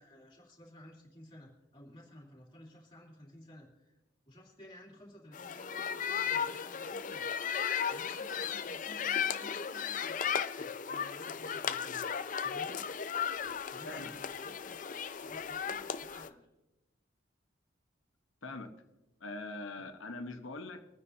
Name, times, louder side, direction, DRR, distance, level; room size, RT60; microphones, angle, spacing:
voice 1, 0.0-4.0 4.2-7.3 7.9-12.0 12.4-12.8 13.7-16.5, left 1 dB, 25° left, -3 dB, 2.9 m, -54 dB
sound 1, 5.3-16.3, left 7 dB, 40° left, 0.5 m, -35 dB
voice 2, 19.2-20.8, left 2 dB, 80° left, 7 dB, 1.2 m, -42 dB
23.5 x 9.7 x 2.8 m, 1.0 s
head